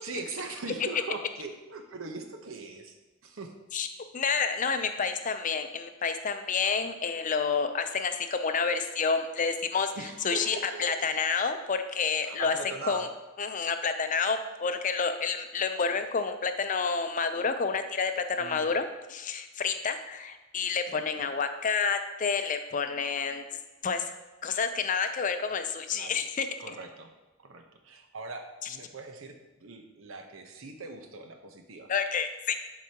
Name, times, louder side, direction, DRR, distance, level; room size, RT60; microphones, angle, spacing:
voice 1, 0.0-2.9 3.2-3.5 9.9-10.9 12.2-13.1 18.4-18.7 20.9-21.3 25.9-26.1 26.6-27.1 27.4-31.9, right 3 dB, 80° right, 4 dB, 0.9 m, -41 dB
voice 2, 4.1-9.9 10.2-12.6 12.9-13.1 13.4-23.4 23.8-24.1 24.4-26.7 31.9-32.5, left 5 dB, 40° left, 8 dB, 0.5 m, -29 dB
11.0 x 4.8 x 2.9 m, 1.1 s
head